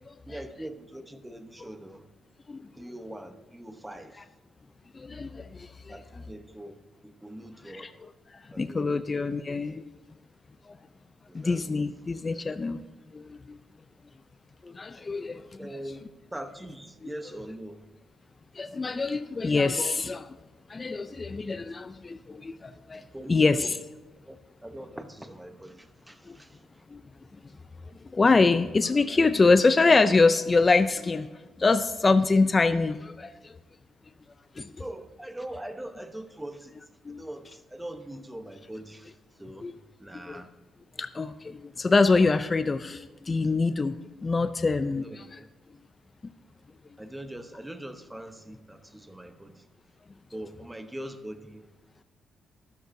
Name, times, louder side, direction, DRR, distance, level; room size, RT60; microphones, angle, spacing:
voice 1, 0.3-2.1 2.8-4.2 5.9-8.0 8.5-9.1 11.3-11.7 15.6-16.0 16.3-17.8 23.1-23.7 24.3-24.4 24.6-26.7 34.8-36.8 37.2-39.7 40.0-40.5 45.0-45.5 47.0-49.6 50.3-51.7, right 1 dB, 10° right, 9 dB, 0.9 m, -42 dB
voice 2, 4.9-6.0 7.7-8.1 8.6-9.8 11.3-12.8 13.1-13.6 14.6-15.7 18.6-20.4 20.7-23.0 23.3-23.8 26.3-26.4 26.9-27.0 28.1-31.3 31.6-33.5 34.6-34.7 37.1-37.2 39.6-39.7 40.2-40.4 41.0-44.0 44.2-45.4, left 3 dB, 30° left, 11 dB, 0.4 m, -25 dB
12.5 x 12.5 x 2.7 m, 1.2 s
cardioid pair, 90°, 0 cm